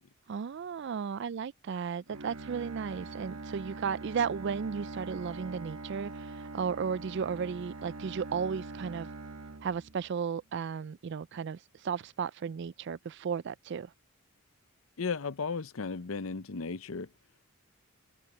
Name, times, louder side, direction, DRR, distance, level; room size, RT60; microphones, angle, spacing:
voice 1, 0.3-9.1 9.6-13.9, right 6 dB, 55° right, 0.3 m, -34 dB
Bowed string instrument, 2.1-10.3, right 3 dB, 80° right, 1.3 m, -43 dB
voice 2, 15.0-17.1, left 4 dB, 70° left, 0.7 m, -35 dB
head